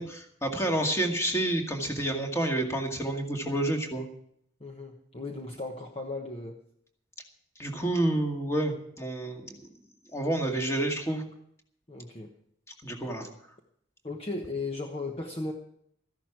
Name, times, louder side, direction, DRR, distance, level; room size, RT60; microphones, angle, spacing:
voice 1, 0.0-4.0 7.6-9.6 10.1-11.2 12.8-13.3, right 1 dB, 15° left, 2 dB, 2.0 m, -29 dB
voice 2, 4.6-6.6 11.9-12.3 14.0-15.5, left 2 dB, 30° left, 2 dB, 1.2 m, -36 dB
14.5 x 11.0 x 6.0 m, 0.69 s
head